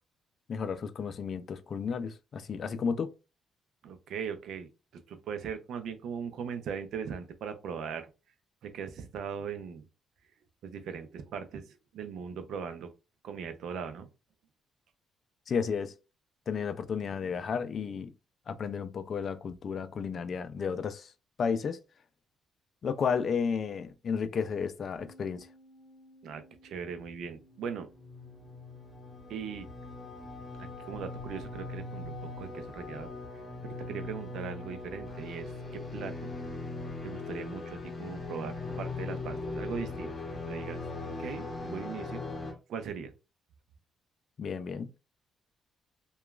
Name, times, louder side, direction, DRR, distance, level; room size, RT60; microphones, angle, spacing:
voice 1, 0.5-3.1 15.5-15.9 16.5-18.1 18.5-21.1 21.4-21.8 22.8-25.5 44.4-44.9, left 6 dB, 55° left, 0.4 m, -32 dB
voice 2, 3.8-8.1 8.6-9.8 10.6-12.9 13.2-14.1 26.2-27.9 29.3-29.7 30.6-33.1 33.6-36.3 37.0-40.1 40.5-40.8 41.2-42.2 42.7-43.1, right 6 dB, 75° right, 0.5 m, -39 dB
Bass guitar, 25.0-31.2, equal, 10° left, 1.6 m, -61 dB
sound 1, 27.6-42.5, left 3 dB, 30° left, 0.9 m, -40 dB
2.9 x 2.3 x 2.3 m
cardioid pair, 90°, 0 cm